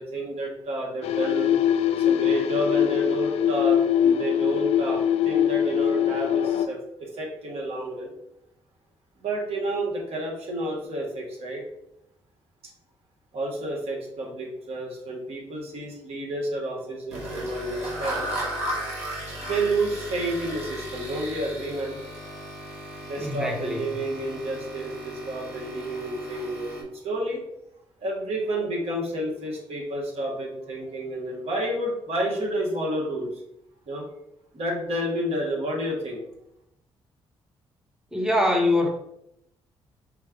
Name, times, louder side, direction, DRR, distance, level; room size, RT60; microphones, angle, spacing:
voice 1, 0.0-1.5 2.0-8.1 9.2-11.6 13.3-18.3 19.4-22.0 23.1-27.4 28.0-33.3 33.9-34.0 34.5-36.2, right 1 dB, 70° right, -2 dB, 1.6 m, -30 dB
sound 1, 1.0-6.7, left 9 dB, 75° left, 0.4 m, -22 dB
sound 2, 17.1-26.8, right 1 dB, 85° right, 1.2 m, -35 dB
voice 2, 23.2-23.8 38.1-38.9, left 1 dB, 5° right, 1 dB, 0.9 m, -23 dB
4.5 x 2.4 x 4.6 m, 0.82 s
supercardioid pair, 60°, 11 cm